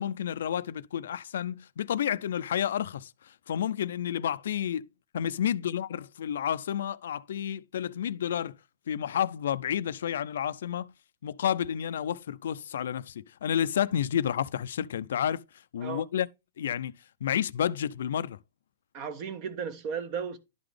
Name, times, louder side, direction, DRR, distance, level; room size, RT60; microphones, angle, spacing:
voice 1, 0.0-4.9 5.1-8.5 8.9-10.9 11.2-15.4 15.7-16.3 16.6-16.9 17.2-18.4, left 9 dB, 80° left, 0.4 m, -30 dB
voice 2, 18.9-20.4, right 6 dB, 40° right, 1.2 m, -35 dB
11.5 x 3.9 x 3.3 m
hypercardioid pair, 150°, 0 cm